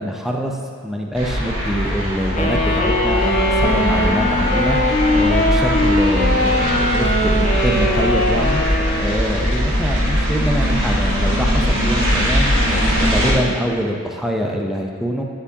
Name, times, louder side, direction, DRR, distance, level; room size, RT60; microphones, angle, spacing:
voice 1, 0.0-4.8 5.1-8.6 9.0-15.2, equal, ahead, 0 dB, 0.4 m, -24 dB
sound 1, 1.1-13.3, equal, 60° right, 1.2 m, -20 dB
sound 2, 2.0-7.1, left 10 dB, 35° right, 1.5 m, -31 dB
Wind instrument woodwind instrument, 2.4-9.3, left 1 dB, 30° left, 0.7 m, -20 dB
9.8 x 4.6 x 2.7 m, 2.1 s
head